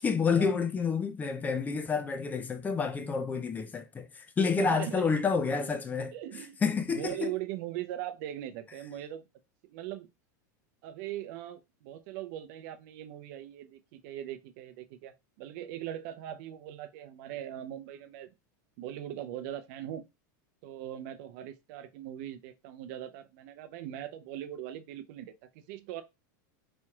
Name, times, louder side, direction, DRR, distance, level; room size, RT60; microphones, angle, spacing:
voice 1, 0.0-6.1 6.6-7.3, left 5 dB, 15° left, 0.4 m, -29 dB
voice 2, 4.6-5.1 6.1-6.6 6.9-9.2 9.6-10.1 10.8-18.3 18.8-20.0 20.6-26.0, right 12 dB, 60° right, 0.5 m, -40 dB
4.2 x 3.0 x 2.3 m
supercardioid pair, 135°, 10 cm